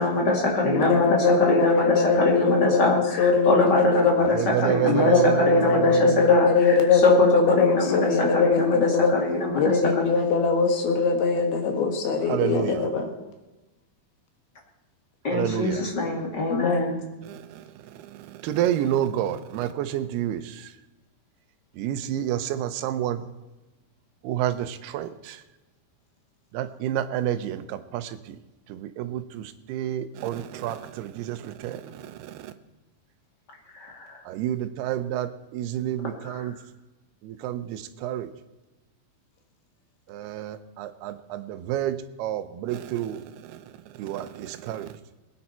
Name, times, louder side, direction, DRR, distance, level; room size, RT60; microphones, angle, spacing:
voice 1, 0.0-10.0 15.2-16.9 33.7-34.2 36.2-36.5, left 2 dB, 35° left, 0 dB, 2.2 m, -24 dB
voice 2, 0.6-4.3 4.8-9.1 9.5-13.1 16.5-17.0, left 4 dB, 75° left, 4 dB, 3.6 m, -21 dB
voice 3, 4.3-6.2 12.3-12.9 15.3-15.8 17.3-17.4 18.4-20.4 21.8-23.2 24.2-25.4 26.5-28.1 28.7-29.4 29.7-31.8 32.4-32.5 34.3-36.5 37.2-38.3 40.1-43.2 44.0-44.9, right 11 dB, 90° right, 11 dB, 2.8 m, -29 dB
21.5 x 9.8 x 4.4 m, 1.1 s
omnidirectional pair, 4.5 m